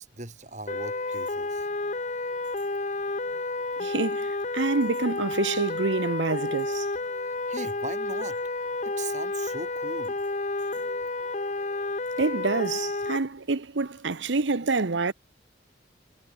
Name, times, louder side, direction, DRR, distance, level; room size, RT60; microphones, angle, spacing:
voice 1, 0.0-1.7 7.5-8.4 8.8-10.2, right 3 dB, 40° right, 4.7 m, -39 dB
sound 1, 0.7-13.2, left 2 dB, 40° left, 1.1 m, -31 dB
voice 2, 3.8-6.9 12.2-15.1, right 3 dB, 85° right, 0.9 m, -27 dB
head